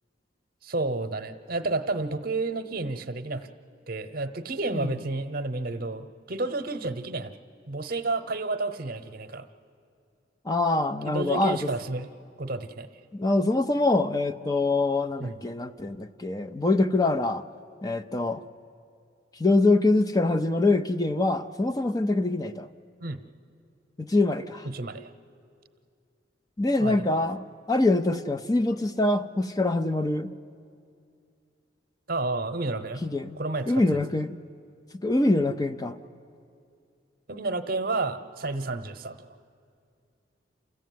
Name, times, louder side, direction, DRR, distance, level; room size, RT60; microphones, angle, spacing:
voice 1, 0.6-3.5 3.9-7.3 7.7-9.5 11.0-12.1 12.4-12.9 15.2-15.4 23.0-23.2 24.6-25.1 26.8-27.1 32.1-33.0 33.3-34.0 37.3-39.4, right 2 dB, 55° right, 0.9 m, -31 dB
voice 2, 10.5-11.7 13.1-17.4 17.8-18.4 19.4-22.7 24.0-24.7 26.6-30.3 33.0-33.4 33.7-34.4 35.0-36.0, left 2 dB, 20° left, 0.5 m, -24 dB
28.0 x 15.0 x 9.4 m
head